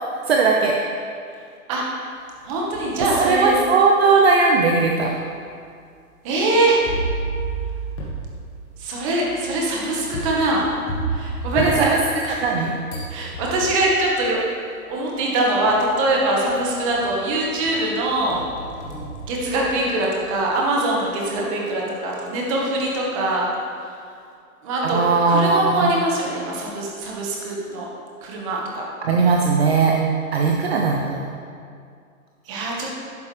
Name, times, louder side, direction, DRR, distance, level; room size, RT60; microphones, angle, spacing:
voice 1, 0.2-0.8 3.1-5.1 11.5-12.0 12.3-12.7 24.8-25.9 29.0-30.0 30.3-31.3, right 4 dB, 45° right, 0 dB, 0.9 m, -18 dB
sound 1, 2.4-3.3 3.9-4.0 4.9-5.0 6.8-12.6 12.9-13.9 15.1-15.2 15.7-16.1 16.5-17.3 17.6-20.0, right 2 dB, 20° left, 1.5 m, -31 dB
voice 2, 2.4-3.5 6.2-6.8 8.8-10.7 11.1-11.9 12.2-12.4 13.1-14.5 14.9-18.4 19.2-23.5 23.8-24.0 24.6-25.0 25.3-27.9 28.2-28.8 32.4-32.9, right 2 dB, 20° right, -2 dB, 1.5 m, -23 dB
11.5 x 9.5 x 3.4 m, 2.3 s
hypercardioid pair, 170°, 43 cm